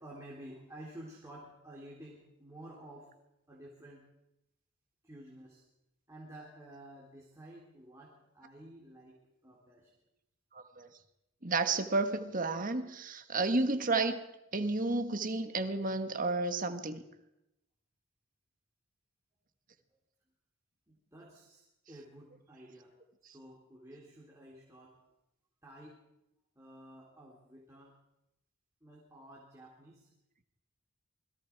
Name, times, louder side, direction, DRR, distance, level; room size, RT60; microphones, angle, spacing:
voice 1, 0.0-3.1 3.5-4.1 5.0-5.6 6.1-9.2 9.4-9.9 20.9-21.6 21.9-23.0 23.3-24.9 25.6-26.0 26.5-27.9 28.8-30.1, right 1 dB, 15° right, -3 dB, 3.6 m, -52 dB
voice 2, 10.5-10.9 11.4-14.2 14.5-17.0, right 3 dB, 40° right, 8 dB, 1.5 m, -31 dB
28.0 x 21.5 x 4.7 m, 0.88 s
head